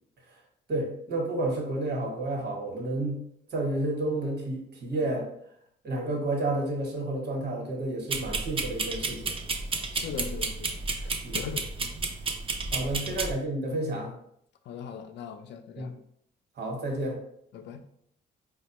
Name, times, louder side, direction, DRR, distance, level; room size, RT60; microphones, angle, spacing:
voice 1, 0.7-3.2 3.5-5.3 5.8-9.4 11.2-11.4 12.7-14.1 15.8-15.9 16.6-17.2, right 2 dB, 55° right, 1 dB, 1.1 m, -30 dB
sound 1, 8.1-13.3, right 3 dB, 30° right, 0.4 m, -32 dB
voice 2, 9.9-11.9 12.8-13.1 13.7-13.8 14.7-16.0 17.5-17.9, left 7 dB, 65° left, 7 dB, 0.4 m, -40 dB
4.1 x 2.2 x 2.9 m, 0.71 s
cardioid pair, 90°, 20 cm